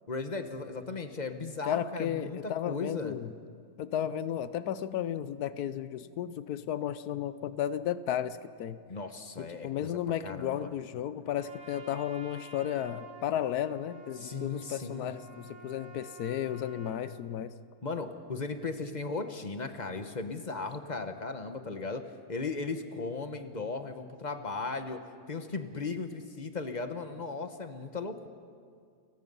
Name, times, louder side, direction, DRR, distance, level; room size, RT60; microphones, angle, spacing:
voice 1, 0.1-3.2 8.9-9.9 10.2-10.7 14.2-15.1 17.8-22.0 22.3-25.0 25.3-28.3, left 3 dB, 30° left, 7 dB, 1.1 m, -37 dB
voice 2, 1.6-3.3 3.8-8.8 9.4-17.5, left 10 dB, 85° left, 14 dB, 1.3 m, -34 dB
Trumpet, 11.3-17.1, right 2 dB, 45° right, 2.7 m, -51 dB
29.5 x 17.5 x 5.5 m, 2.2 s
omnidirectional pair, 1.6 m